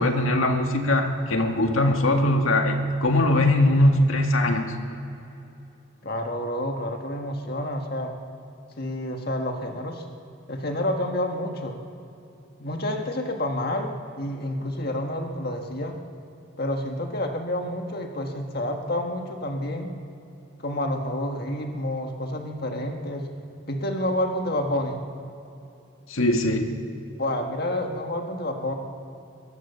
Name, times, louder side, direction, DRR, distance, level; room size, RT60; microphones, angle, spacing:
voice 1, 0.0-4.7 26.1-26.8, left 1 dB, 80° left, 4 dB, 1.9 m, -21 dB
voice 2, 6.0-8.2 8.8-10.1 10.5-11.8 12.6-13.9 14.2-16.0 16.6-19.9 20.6-23.3 23.7-25.0 27.2-28.7, left 1 dB, 50° left, 3 dB, 1.7 m, -29 dB
23.0 x 19.5 x 6.9 m, 2.9 s
head